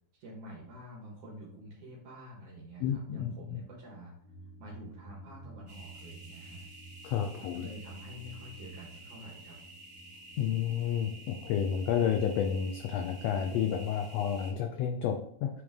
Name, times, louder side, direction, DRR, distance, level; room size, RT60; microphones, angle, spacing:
voice 1, 0.2-4.1 4.6-6.6 7.4-9.6, equal, 70° right, -4 dB, 2.8 m, -48 dB
voice 2, 2.8-3.6 7.0-7.7 10.4-15.6, left 8 dB, 85° left, 4 dB, 1.4 m, -31 dB
sound 1, 4.2-13.3, right 2 dB, 45° right, 2.1 m, -53 dB
sound 2, 5.7-14.5, right 2 dB, 20° right, 0.7 m, -51 dB
8.8 x 3.2 x 3.6 m, 0.66 s
omnidirectional pair, 3.6 m